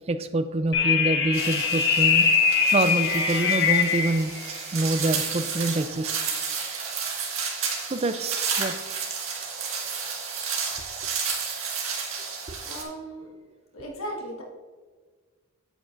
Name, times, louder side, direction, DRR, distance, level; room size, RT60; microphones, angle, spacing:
voice 1, 0.1-2.3 2.7-4.3 4.7-6.1 7.9-8.7 12.5-12.6, right 2 dB, 25° right, 11 dB, 0.3 m, -26 dB
sound 1, 0.7-4.2, left 6 dB, 50° left, 1.0 m, -22 dB
sound 2, 1.3-12.8, right 6 dB, 65° right, 1.7 m, -32 dB
voice 2, 12.6-13.3 13.7-14.4, right 1 dB, 70° left, 0 dB, 1.4 m, -36 dB
8.8 x 8.4 x 2.5 m, 1.4 s
head